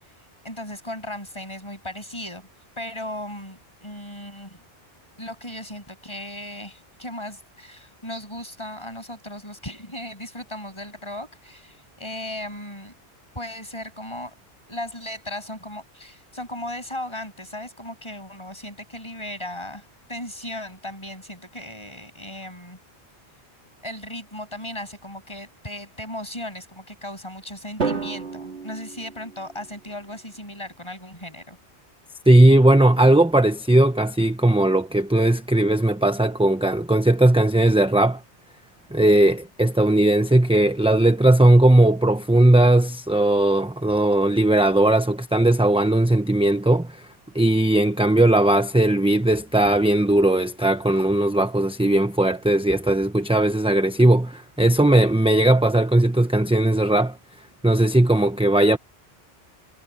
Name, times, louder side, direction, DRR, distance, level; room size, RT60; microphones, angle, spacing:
voice 1, 0.4-2.5 2.8-4.6 5.2-12.9 13.3-14.3 14.7-22.8 23.8-31.6, left 1 dB, 25° left, 7.7 m, -36 dB
Drum, 27.8-29.9, right 5 dB, 70° right, 2.7 m, -31 dB
voice 2, 32.3-38.2 38.9-47.1 47.3-57.2 57.6-58.8, right 1 dB, 5° right, 0.7 m, -18 dB
omnidirectional pair, 1.2 m